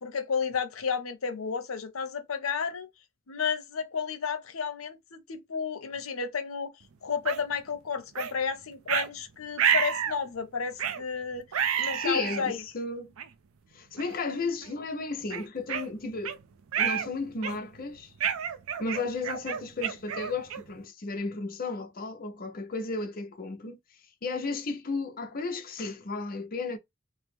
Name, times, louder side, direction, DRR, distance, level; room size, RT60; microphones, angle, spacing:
voice 1, 0.0-2.9 3.3-6.7 7.0-11.5 11.8-12.6, left 6 dB, 85° left, 0.7 m, -32 dB
sound 1, 7.3-7.4 8.2-8.3 8.9-9.1 9.6-10.2 10.8-11.0 11.5-12.4 13.2-13.3 14.0-14.2 14.6-14.8 15.3-16.4 16.7-17.1 17.4-17.8 18.2-20.8, right 8 dB, 85° right, 0.4 m, -29 dB
voice 2, 11.9-13.1 13.7-16.4 16.8-18.1 18.8-23.8 24.2-26.8, left 3 dB, 45° left, 0.6 m, -34 dB
3.0 x 2.0 x 3.3 m
head